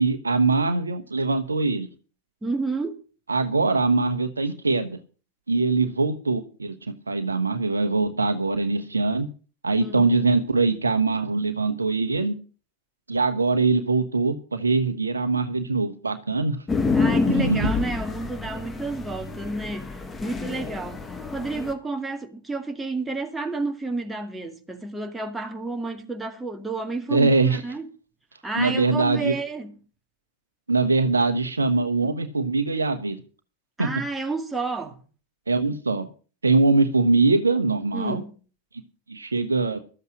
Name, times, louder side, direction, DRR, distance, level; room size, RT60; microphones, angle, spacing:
voice 1, 0.0-1.9 3.3-5.0 5.5-9.3 9.6-12.3 13.1-16.6 17.3-17.7 27.1-27.6 28.6-29.3 30.7-33.2 33.8-33.9 35.5-36.1 36.4-38.2 39.1-39.8, right 3 dB, 75° right, 1.2 m, -22 dB
voice 2, 2.4-3.0 9.8-10.1 16.9-27.9 28.4-29.7 33.8-35.0 37.9-38.4, right 3 dB, 10° right, 2.0 m, -31 dB
sound 1, 16.7-21.7, left 4 dB, 15° left, 1.7 m, -27 dB
13.5 x 8.1 x 6.4 m
figure-of-eight pair, 90°, 0 cm